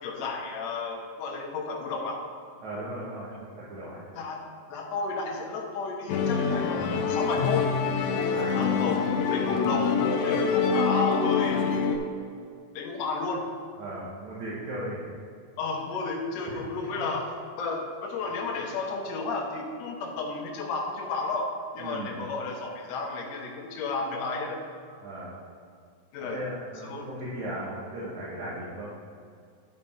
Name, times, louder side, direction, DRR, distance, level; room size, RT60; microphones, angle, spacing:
voice 1, 0.0-2.2 4.1-4.4 4.7-7.7 8.5-11.6 12.7-13.5 15.6-24.6 26.1-26.4 26.8-27.0, left 4 dB, 65° left, -1 dB, 1.8 m, -32 dB
voice 2, 2.6-4.0 8.3-8.5 13.8-15.0 16.5-16.6 21.8-22.2 25.0-25.4 26.2-28.9, right 1 dB, 60° right, -7 dB, 2.3 m, -37 dB
Musical instrument, 6.1-12.0, left 5 dB, 80° left, 1.7 m, -25 dB
10.5 x 5.0 x 4.3 m, 2.2 s
omnidirectional pair, 4.1 m